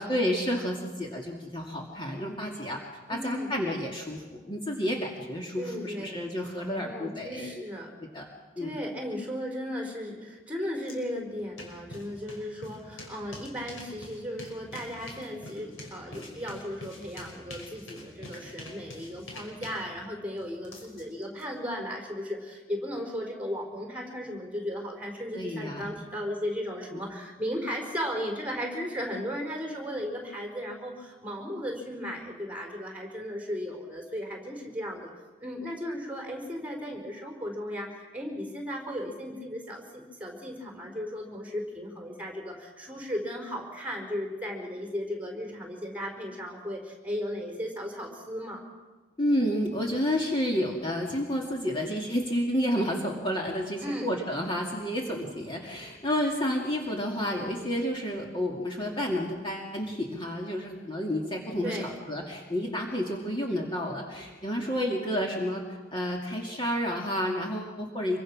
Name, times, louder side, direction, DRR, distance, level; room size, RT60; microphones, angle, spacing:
voice 1, 0.0-2.8 3.1-7.7 8.1-8.2 8.6-8.8 25.3-26.0 26.9-27.1 49.2-68.2, equal, 25° left, -1 dB, 2.5 m, -30 dB
voice 2, 3.1-3.5 5.6-6.3 6.6-7.9 8.6-35.1 35.4-48.6 53.8-54.2 61.6-61.9, equal, 5° right, 1 dB, 4.5 m, -36 dB
sound 1, 10.8-10.9 11.3-21.4, left 1 dB, 70° left, 5.7 m, -45 dB
26.0 x 24.0 x 6.2 m, 1.3 s
head